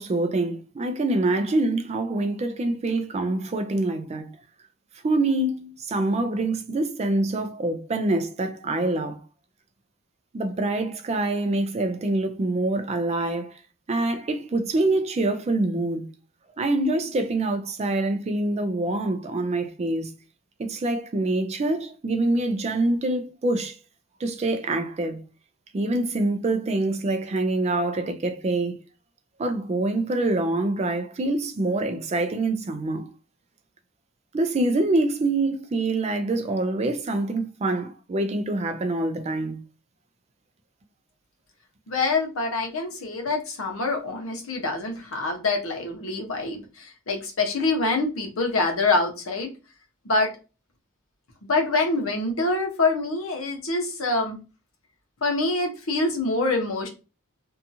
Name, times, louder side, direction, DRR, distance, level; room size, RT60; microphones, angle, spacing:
voice 1, 0.0-4.3 5.0-9.2 10.3-13.6 13.9-16.1 16.6-20.1 20.6-23.8 24.2-25.2 25.7-28.8 29.4-33.1 34.3-39.6, right 2 dB, 30° right, 0.3 m, -25 dB
voice 2, 41.9-49.5 50.0-50.3 51.4-54.4 55.2-56.9, left 3 dB, 75° left, 0.8 m, -25 dB
2.7 x 2.3 x 2.6 m
head